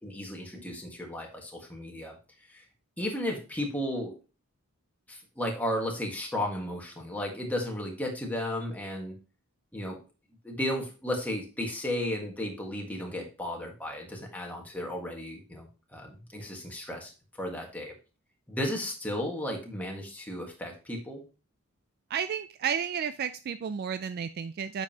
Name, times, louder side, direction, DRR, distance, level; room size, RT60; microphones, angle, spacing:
voice 1, 0.0-2.2 2.5-2.6 3.0-4.1 5.1-9.2 9.7-10.0 10.4-17.1 17.4-17.9 18.5-21.2, left 1 dB, 5° left, 0 dB, 1.5 m, -34 dB
voice 2, 22.1-24.8, right 7 dB, 45° right, 11 dB, 0.3 m, -32 dB
8.1 x 5.3 x 2.8 m, 0.33 s
head